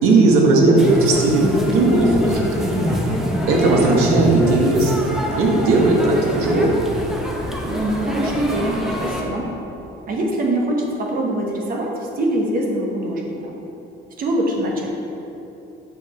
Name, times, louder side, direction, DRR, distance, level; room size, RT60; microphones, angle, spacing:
voice 1, 0.0-2.5 3.5-4.9 5.4-6.8, right 2 dB, 85° right, -1 dB, 1.2 m, -16 dB
sound 1, 0.8-9.2, equal, ahead, 0.6 m, -24 dB
voice 2, 7.6-9.5 10.1-13.5 14.2-14.9, right 1 dB, 45° right, 0 dB, 1.1 m, -23 dB
7.3 x 5.1 x 4.2 m, 2.9 s
cardioid pair, 165°, 21 cm